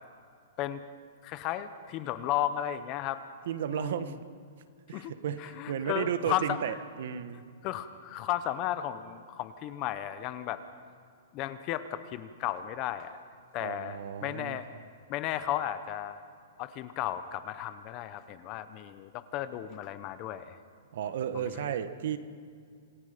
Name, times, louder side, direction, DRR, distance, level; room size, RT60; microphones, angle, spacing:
voice 1, 1.2-3.2 3.7-4.1 4.9-5.1 5.4-6.8 7.6-10.6 11.3-13.2 13.5-14.7 15.1-16.2 16.6-20.6 21.3-21.7, left 12 dB, 25° left, 12 dB, 0.8 m, -34 dB
voice 2, 3.5-4.2 4.9-7.4 13.6-14.6 20.9-22.2, right 9 dB, 60° right, 11 dB, 1.3 m, -33 dB
27.0 x 19.0 x 5.1 m, 2.2 s
hypercardioid pair, 170°, 0 cm